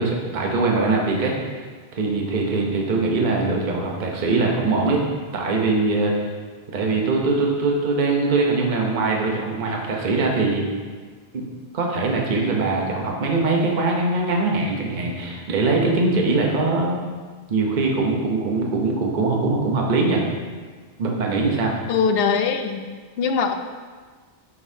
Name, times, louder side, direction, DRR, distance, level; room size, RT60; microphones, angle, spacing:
voice 1, 0.0-1.3 1.9-5.0 5.3-6.3 6.7-10.6 11.3-11.4 11.7-17.0 17.5-20.2 21.0-21.8, right 3 dB, 45° right, -1 dB, 1.0 m, -22 dB
voice 2, 21.9-22.8 23.2-23.5, left 6 dB, 65° left, 7 dB, 0.8 m, -21 dB
9.5 x 5.4 x 2.7 m, 1.5 s
omnidirectional pair, 1.1 m